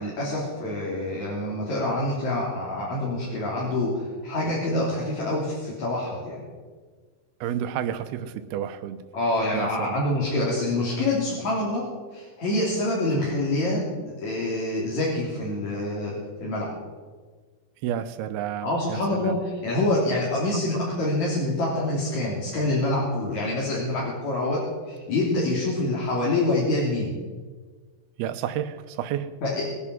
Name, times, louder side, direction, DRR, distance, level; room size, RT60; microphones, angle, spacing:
voice 1, 0.0-6.4 9.1-11.9 12.1-16.7 18.6-24.6 24.9-27.2 29.4-29.6, left 1 dB, 50° left, -6 dB, 4.1 m, -26 dB
voice 2, 7.4-9.0 9.5-9.9 17.8-19.4 28.2-29.3, right 10 dB, 85° right, 11 dB, 2.9 m, -30 dB
21.5 x 10.0 x 6.1 m, 1.5 s
omnidirectional pair, 4.4 m